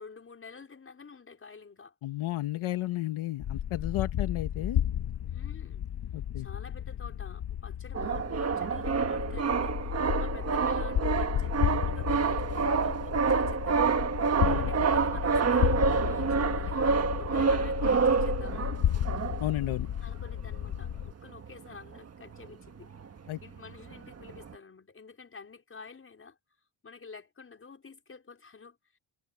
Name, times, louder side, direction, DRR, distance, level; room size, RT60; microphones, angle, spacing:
voice 1, 0.0-1.9 5.3-5.8 6.4-16.8 17.1-18.8 20.0-22.9 23.4-26.4 26.8-29.0, left 5 dB, 25° left, 5.1 m, -49 dB
voice 2, 2.0-4.8 6.1-6.5 14.4-14.7 19.4-19.9 23.3-23.4, left 15 dB, 70° left, 1.4 m, -33 dB
sound 1, 3.4-21.1, left 10 dB, 50° left, 1.4 m, -33 dB
sound 2, 7.9-19.7 20.2-20.3 20.5-20.7 21.2-22.5 22.8-24.5, right 5 dB, 30° right, 1.5 m, -28 dB
cardioid pair, 135°, 50 cm